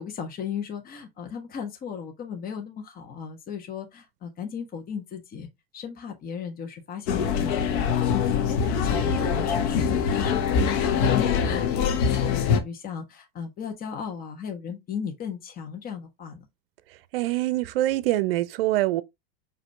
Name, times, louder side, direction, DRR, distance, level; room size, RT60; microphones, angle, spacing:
voice 1, 0.0-5.5 5.7-11.7 11.9-16.5, left 7 dB, 30° left, 1.2 m, -36 dB
sound 1, 7.1-12.6, left 7 dB, 60° left, 1.1 m, -23 dB
voice 2, 17.1-19.0, right 16 dB, 70° right, 0.5 m, -25 dB
5.0 x 2.8 x 3.4 m
hypercardioid pair, 105°, 30 cm